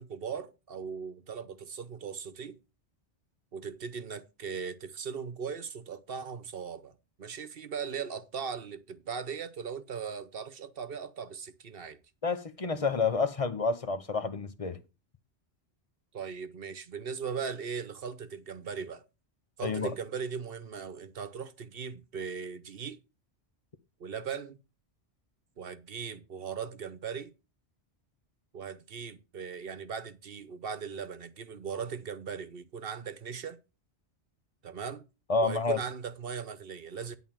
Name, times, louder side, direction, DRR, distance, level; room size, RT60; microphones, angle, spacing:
voice 1, 0.0-2.6 3.5-6.9 7.2-12.0 16.1-19.0 19.6-23.0 24.0-24.6 25.6-27.3 28.5-33.6 34.6-35.0 35.4-37.2, right 6 dB, 60° right, 1.1 m, -39 dB
voice 2, 12.2-14.8 19.6-19.9 35.3-35.8, left 4 dB, 35° left, 0.7 m, -29 dB
10.5 x 3.9 x 7.4 m
omnidirectional pair, 1.1 m